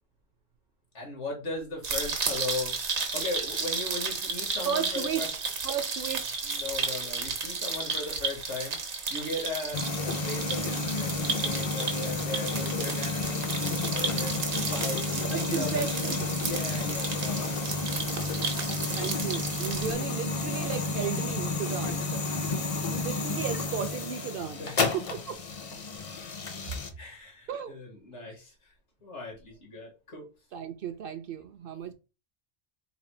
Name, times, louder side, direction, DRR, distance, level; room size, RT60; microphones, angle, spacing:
voice 1, 0.9-2.8 3.1-5.4 6.4-8.8 9.1-15.9 16.3-17.8 21.8-22.1 23.9-25.2 25.7-25.8 27.0-28.7 29.0-30.3, left 2 dB, 90° left, 2.0 m, -38 dB
sound 1, 1.8-19.9, right 5 dB, 85° right, 1.3 m, -33 dB
voice 2, 4.6-5.4 5.6-6.4 15.3-16.3 18.2-18.3 18.6-22.2 22.9-25.4 27.5-27.8 30.5-31.9, right 8 dB, 60° right, 0.6 m, -35 dB
sound 2, 9.7-26.9, left 3 dB, 40° left, 0.5 m, -31 dB
4.2 x 2.2 x 4.3 m
omnidirectional pair, 1.2 m